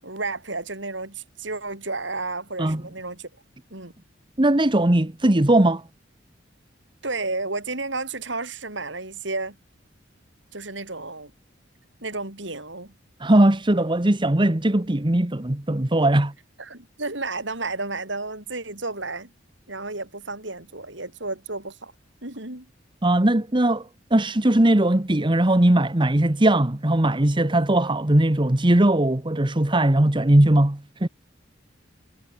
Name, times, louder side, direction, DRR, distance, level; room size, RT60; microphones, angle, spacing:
voice 1, 0.0-3.3 3.7-3.9 7.0-9.6 10.5-11.3 12.0-12.9 16.6-19.3 19.7-21.9 22.2-22.7, right 3 dB, 65° right, 7.1 m, -32 dB
voice 2, 4.4-5.8 13.2-16.3 23.0-31.1, right 1 dB, 25° right, 1.2 m, -19 dB
head